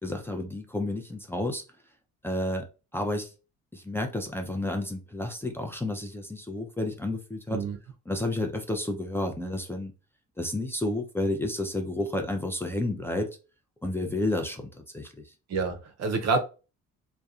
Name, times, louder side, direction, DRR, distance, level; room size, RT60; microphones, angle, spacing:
voice 1, 0.0-1.6 2.2-2.6 2.9-3.3 3.7-7.6 8.1-9.9 10.4-13.3 13.8-15.3, left 1 dB, 10° left, 0.4 m, -31 dB
voice 2, 15.5-16.4, right 4 dB, 60° right, 0.6 m, -27 dB
2.6 x 2.2 x 2.4 m
cardioid pair, 90°, 30 cm